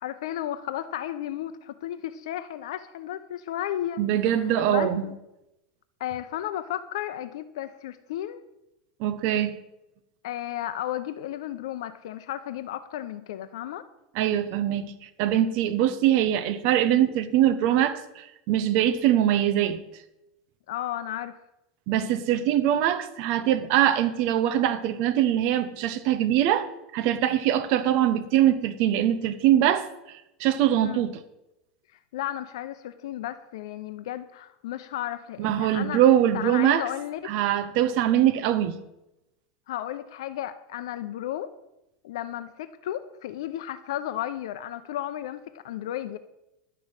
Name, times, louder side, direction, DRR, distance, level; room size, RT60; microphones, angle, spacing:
voice 1, 0.0-4.0 4.5-5.1 6.0-8.4 10.2-13.8 20.7-21.4 30.8-31.0 32.1-36.0 36.3-37.3 39.7-41.5 42.0-46.2, left 12 dB, 80° left, 11 dB, 0.7 m, -33 dB
voice 2, 4.0-5.1 9.0-9.6 14.1-19.8 21.9-31.2 35.4-36.8 37.3-38.8, right 11 dB, 50° right, 9 dB, 0.8 m, -23 dB
11.0 x 6.2 x 8.8 m, 0.92 s
supercardioid pair, 155°, 3 cm